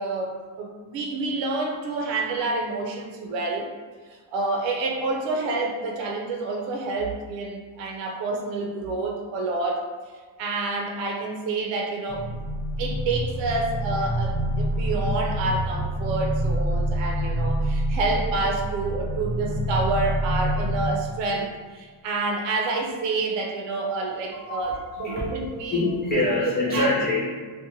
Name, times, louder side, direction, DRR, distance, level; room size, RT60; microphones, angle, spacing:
voice 1, 0.0-3.7 4.1-9.8 10.4-12.2 12.8-25.8 26.1-26.9, right 3 dB, 65° right, 1 dB, 0.6 m, -28 dB
sound 1, 12.1-20.9, right 1 dB, 55° left, 0.9 m, -26 dB
voice 2, 24.3-24.7 25.0-25.2 25.7-27.2, left 2 dB, 20° left, -7 dB, 0.4 m, -25 dB
2.8 x 2.2 x 2.6 m, 1.5 s
cardioid pair, 150°, 47 cm